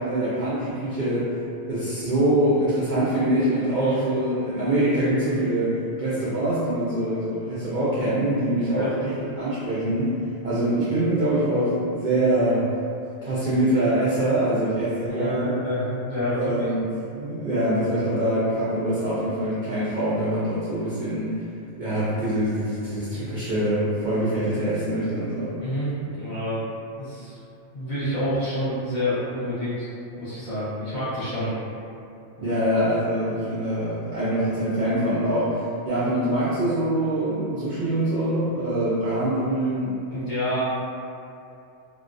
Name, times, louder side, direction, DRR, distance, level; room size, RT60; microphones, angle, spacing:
voice 1, 0.0-1.3 1.7-9.1 9.4-10.1 10.4-12.7 13.2-15.5 16.3-21.3 21.8-25.5 32.4-39.9, right 1 dB, 65° right, -11 dB, 0.4 m, -24 dB
voice 2, 15.1-16.5 25.6-26.6 27.0-27.3 27.7-29.9 30.2-31.5 32.4-32.5 40.1-40.6, equal, 45° left, -13 dB, 0.7 m, -28 dB
2.3 x 2.2 x 2.5 m, 2.6 s
omnidirectional pair, 1.4 m